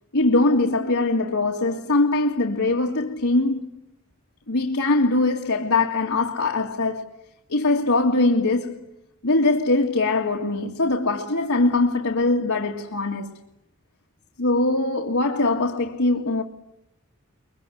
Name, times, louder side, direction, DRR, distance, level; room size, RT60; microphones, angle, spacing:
voice 1, 0.1-3.7 4.5-7.1 7.5-8.8 9.2-13.4 14.4-16.4, left 2 dB, 85° left, 2.1 m, -22 dB
23.0 x 22.5 x 10.0 m
head